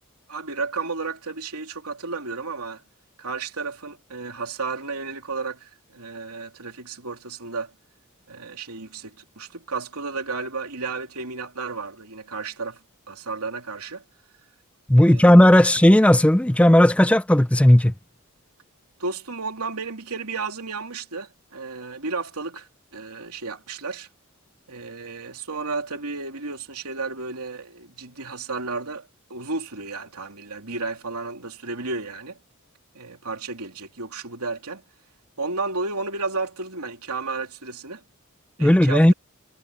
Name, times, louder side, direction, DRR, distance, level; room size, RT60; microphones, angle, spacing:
voice 1, 0.3-2.8 3.2-7.7 8.3-14.0 14.9-15.7 19.0-24.1 24.7-32.4 32.9-34.8 35.4-38.0 38.6-39.1, right 4 dB, 90° right, 3.2 m, -33 dB
voice 2, 14.9-17.9 38.6-39.1, left 1 dB, 5° left, 0.4 m, -15 dB
head